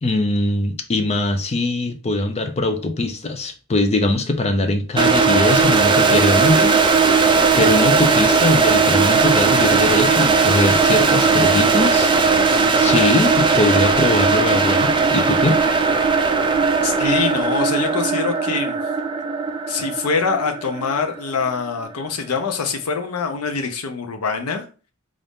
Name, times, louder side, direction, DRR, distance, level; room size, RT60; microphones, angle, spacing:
voice 1, 0.0-6.8 7.6-12.1 12.8-15.6, left 2 dB, 30° left, 0.5 m, -21 dB
sound 1, 5.0-21.8, right 4 dB, 20° right, 0.4 m, -17 dB
voice 2, 16.8-18.8 19.7-24.7, left 5 dB, 90° left, 0.6 m, -24 dB
3.9 x 2.5 x 3.5 m
head